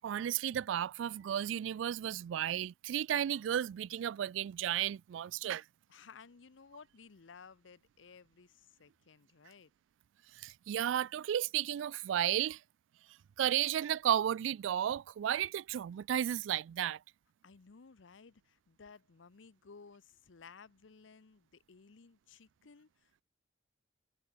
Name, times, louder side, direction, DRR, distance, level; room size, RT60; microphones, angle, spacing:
voice 1, 0.0-5.6 10.4-12.6 13.4-17.0, right 10 dB, 90° right, 0.3 m, -33 dB
voice 2, 5.9-9.7 17.4-23.2, left 5 dB, 85° left, 0.7 m, -57 dB
head